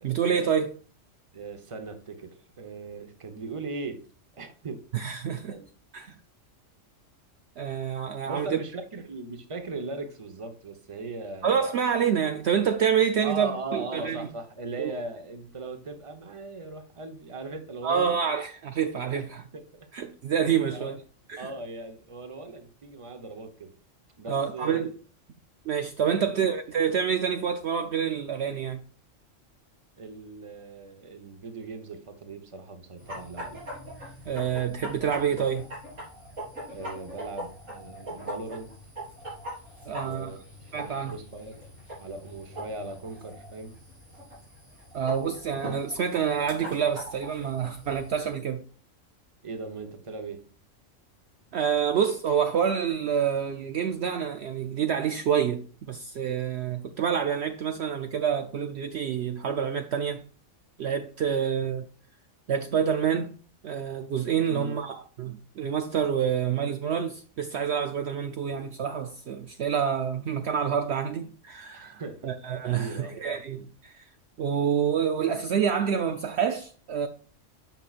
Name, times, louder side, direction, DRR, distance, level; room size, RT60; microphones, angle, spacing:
voice 1, 0.0-0.8 4.9-5.6 5.9-6.2 7.6-8.6 11.4-14.3 14.8-14.9 17.8-19.4 19.9-21.0 21.3-21.5 24.3-24.9 25.7-28.8 34.2-35.7 39.9-40.3 40.7-41.1 44.9-48.6 51.5-60.2 60.8-61.9 62.5-63.4 63.6-74.0 74.4-77.1, right 7 dB, 65° right, 0.8 m, -27 dB
voice 2, 1.3-4.0 4.3-4.8 5.5-5.7 8.2-11.7 13.2-18.2 19.1-19.2 19.5-19.9 20.7-20.9 21.4-23.7 24.2-24.9 26.2-26.4 30.0-33.6 36.6-38.7 40.0-40.4 40.8-41.6 42.0-43.8 49.4-50.4 64.5-64.8 71.7-72.3 72.7-73.2, right 3 dB, 25° right, 0.9 m, -39 dB
sound 1, 33.0-48.3, equal, 90° right, 4.6 m, -42 dB
9.1 x 5.8 x 2.4 m
omnidirectional pair, 1.3 m